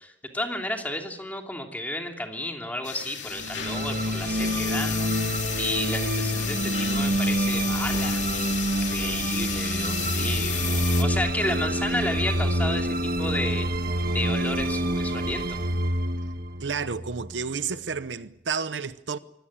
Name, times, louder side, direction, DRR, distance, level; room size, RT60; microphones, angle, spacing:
voice 1, 0.0-8.5 8.8-13.7 14.1-15.6, left 1 dB, 10° left, 2.9 m, -32 dB
sound 1, 2.8-11.0, left 10 dB, 85° left, 2.4 m, -33 dB
sound 2, 3.3-17.7, right 1 dB, 55° right, 1.6 m, -27 dB
voice 2, 16.6-19.2, right 5 dB, 75° right, 0.8 m, -31 dB
24.0 x 17.5 x 8.6 m
head